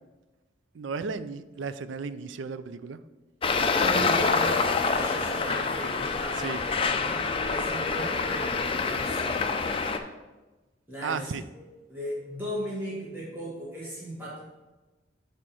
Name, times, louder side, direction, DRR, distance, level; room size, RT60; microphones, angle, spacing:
voice 1, 0.7-3.0 6.4-6.6 11.0-11.4, right 5 dB, 85° right, 13 dB, 0.4 m, -34 dB
Traffic noise roadway noise, 3.4-10.0, left 4 dB, 30° left, 0.5 m, -26 dB
voice 2, 3.6-9.4 10.9-11.6 11.9-14.4, equal, 10° right, -8 dB, 1.8 m, -36 dB
6.2 x 4.4 x 6.1 m, 1.1 s
head